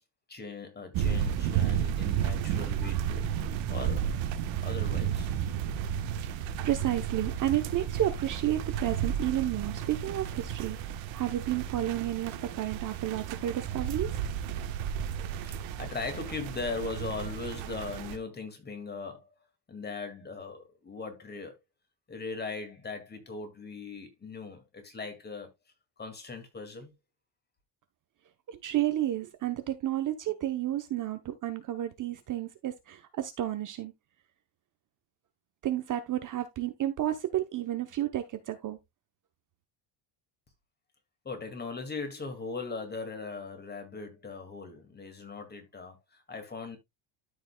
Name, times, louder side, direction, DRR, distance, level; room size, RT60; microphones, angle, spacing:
voice 1, 0.3-3.3 3.7-4.1 4.6-5.3 15.5-19.2 19.7-21.6 22.1-25.5 26.0-26.9 41.2-46.8, left 4 dB, 20° left, 2.1 m, -39 dB
sound 1, 0.9-18.2, right 9 dB, 65° right, 1.3 m, -32 dB
voice 2, 6.6-14.1 28.5-33.9 35.6-38.8, right 12 dB, 40° right, 0.9 m, -31 dB
13.0 x 5.4 x 2.2 m
cardioid pair, 155°, 49 cm